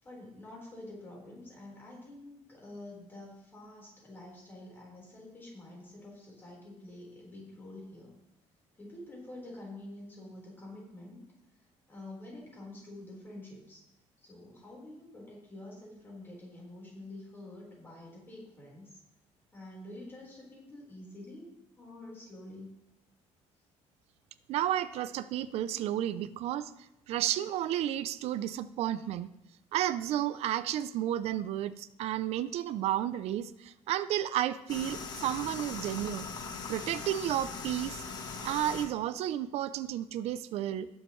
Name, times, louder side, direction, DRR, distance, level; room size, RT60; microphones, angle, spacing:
voice 1, 0.0-8.1 8.8-11.2 11.6-13.9 14.2-19.0 19.5-21.5 21.8-22.7, left 1 dB, 15° left, -4 dB, 4.2 m, -48 dB
voice 2, 24.5-26.7 27.1-29.3 29.7-36.3 36.7-38.0 38.4-40.9, right 12 dB, 60° right, 14 dB, 0.5 m, -32 dB
sound 1, 34.7-38.9, left 4 dB, 35° left, 1.3 m, -40 dB
19.0 x 7.2 x 3.2 m, 0.91 s
cardioid pair, 165°, 12 cm